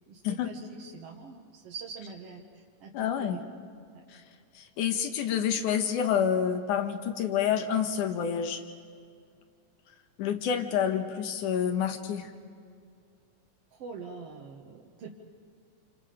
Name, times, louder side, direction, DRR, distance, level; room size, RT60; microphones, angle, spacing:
voice 1, 0.1-3.4 3.9-4.0 13.7-15.1, right 5 dB, 55° right, -2 dB, 2.0 m, -44 dB
voice 2, 2.9-3.4 4.1-4.2 4.6-8.6 10.2-12.3, left 8 dB, 70° left, 6 dB, 2.7 m, -28 dB
29.0 x 28.0 x 5.1 m, 2.3 s
omnidirectional pair, 3.9 m